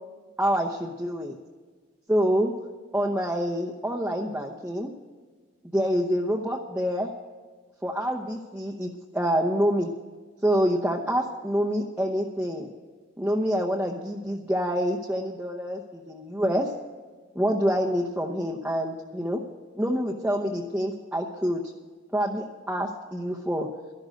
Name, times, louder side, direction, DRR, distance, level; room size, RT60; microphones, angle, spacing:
voice 1, 0.4-1.4 2.1-2.5 2.9-4.9 5.7-7.1 7.8-9.9 10.4-12.7 13.2-16.7 17.3-19.4 19.7-21.6 22.1-23.7, equal, 10° right, -1 dB, 0.8 m, -26 dB
13.0 x 11.5 x 6.3 m, 1.5 s
head